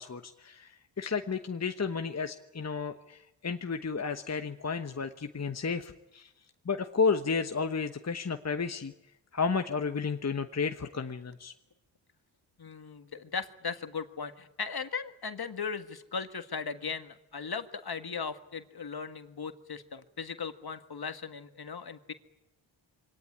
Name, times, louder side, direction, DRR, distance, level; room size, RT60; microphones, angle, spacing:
voice 1, 0.0-6.3 6.6-8.9 9.3-11.5, left 5 dB, 35° left, 7 dB, 1.1 m, -32 dB
voice 2, 12.6-22.1, left 5 dB, 50° left, 9 dB, 1.8 m, -38 dB
24.0 x 18.0 x 9.9 m, 0.96 s
cardioid pair, 45°, 48 cm